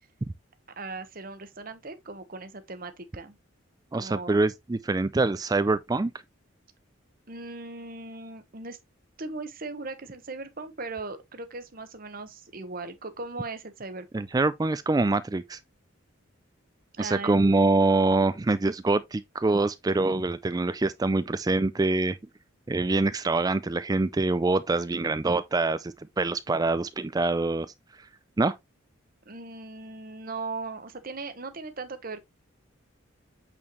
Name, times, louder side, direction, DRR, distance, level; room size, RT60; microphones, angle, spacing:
voice 1, 0.8-3.4 3.9-4.4 7.3-8.8 9.2-14.3 17.0-17.4 29.3-32.2, right 3 dB, 45° right, 1.1 m, -38 dB
voice 2, 3.9-6.1 14.1-15.6 17.0-22.2 22.7-27.7 28.4-28.5, right 3 dB, 20° right, 0.3 m, -25 dB
8.5 x 4.4 x 3.1 m
head